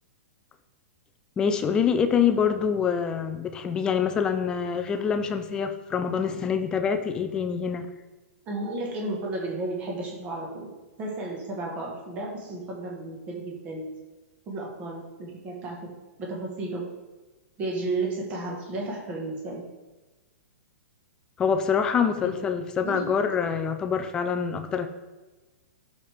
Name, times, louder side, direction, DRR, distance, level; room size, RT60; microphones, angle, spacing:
voice 1, 1.4-7.9 21.4-24.9, left 7 dB, 10° left, 7 dB, 0.4 m, -25 dB
voice 2, 8.5-10.7 11.0-13.9 14.5-15.9 16.2-16.9 17.6-19.6 22.2-22.3 22.8-23.1, right 2 dB, 20° right, -1 dB, 1.5 m, -33 dB
11.0 x 6.5 x 3.5 m, 1.2 s
hypercardioid pair, 175°, 8 cm